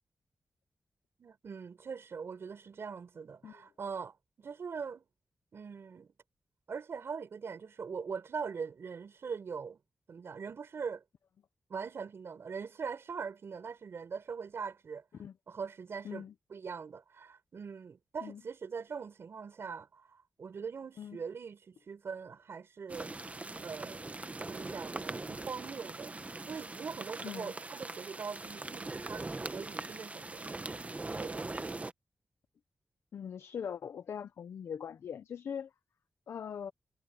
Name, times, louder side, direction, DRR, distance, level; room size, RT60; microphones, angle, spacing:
voice 1, 1.2-5.0 5.5-6.1 6.7-9.8 10.1-11.0 11.7-15.0 15.5-16.2 16.5-23.1 23.6-24.0 24.5-26.1 26.5-30.6 31.1-31.5, right 6 dB, 75° right, 4.8 m, -42 dB
sound 1, 22.9-31.9, right 2 dB, 35° right, 1.3 m, -41 dB
voice 2, 27.2-27.5 33.1-35.7 36.3-36.7, left 8 dB, 85° left, 0.7 m, -41 dB
cardioid pair, 50°, 4 cm